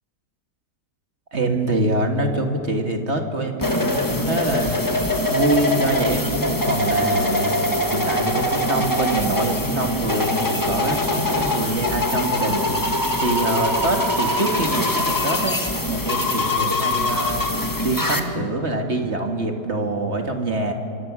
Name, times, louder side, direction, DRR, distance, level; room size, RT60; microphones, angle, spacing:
voice 1, 1.3-4.8 5.3-7.5 7.9-12.6 13.2-17.5 17.8-20.7, right 2 dB, 40° right, 4 dB, 2.0 m, -25 dB
sound 1, 3.6-18.2, left 1 dB, 15° left, 1.3 m, -23 dB
25.5 x 22.5 x 6.1 m, 2.9 s
omnidirectional pair, 1.8 m